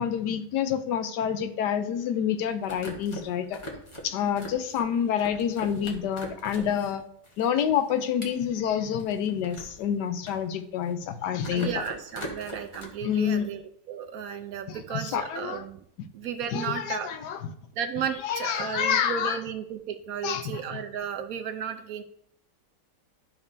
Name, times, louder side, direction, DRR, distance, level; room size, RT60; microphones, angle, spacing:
voice 1, 0.0-3.6 4.0-7.0 7.4-11.8 13.0-13.5 14.7-15.6 16.5-17.5 18.2-19.4 20.2-20.8, left 8 dB, 85° left, 9 dB, 1.2 m, -28 dB
sound 1, 2.4-7.0 7.2-9.8 10.1-11.1 11.4-12.9, equal, 20° left, 1.0 m, -41 dB
voice 2, 11.5-13.6 13.9-15.8 16.1-17.1 17.8-22.0, right 8 dB, 70° right, 8 dB, 0.9 m, -34 dB
11.5 x 5.3 x 2.6 m, 0.67 s
omnidirectional pair, 1.8 m